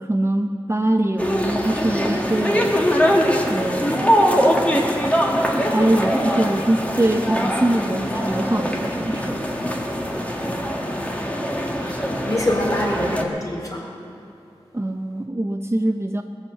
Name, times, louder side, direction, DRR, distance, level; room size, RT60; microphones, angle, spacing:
voice 1, 0.0-2.7 3.5-4.2 5.7-9.5 14.7-16.2, right 1 dB, 25° right, 4 dB, 0.7 m, -23 dB
sound 1, 1.2-13.2, equal, 15° left, 1.7 m, -22 dB
voice 2, 11.8-13.9, left 1 dB, 35° left, -3 dB, 4.4 m, -25 dB
19.5 x 7.2 x 8.1 m, 2.7 s
wide cardioid pair, 55°, 10 cm